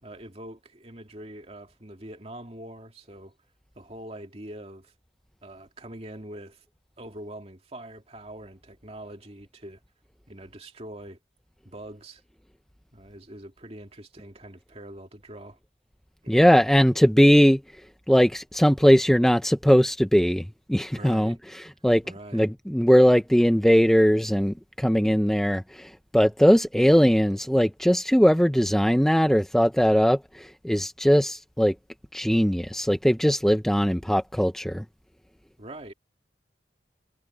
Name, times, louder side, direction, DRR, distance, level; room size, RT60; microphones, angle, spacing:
voice 1, 0.0-3.4 3.7-4.9 5.4-6.7 7.0-9.8 10.3-11.2 11.6-12.2 12.9-15.6 16.2-16.4 20.9-21.4 22.0-22.5 35.6-35.9, right 1 dB, 35° right, 2.5 m, -43 dB
voice 2, 16.3-17.6 18.1-20.4 20.7-22.0 22.3-31.7 32.1-34.8, equal, ahead, 0.5 m, -20 dB
head